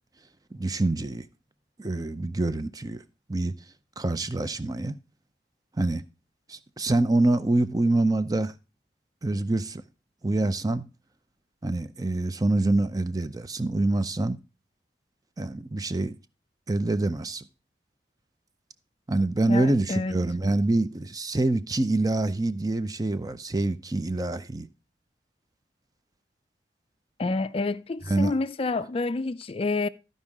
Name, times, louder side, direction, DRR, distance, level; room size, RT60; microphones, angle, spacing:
voice 1, 0.5-1.3 1.8-3.0 3.3-3.5 4.0-4.9 5.8-6.0 6.5-8.5 9.2-9.8 10.2-10.8 11.6-14.4 15.4-16.1 16.7-17.4 19.1-24.7 28.1-28.3, right 2 dB, 20° right, 0.6 m, -26 dB
voice 2, 19.5-20.2 27.2-29.9, left 3 dB, 35° left, 0.4 m, -28 dB
13.5 x 5.4 x 3.5 m
head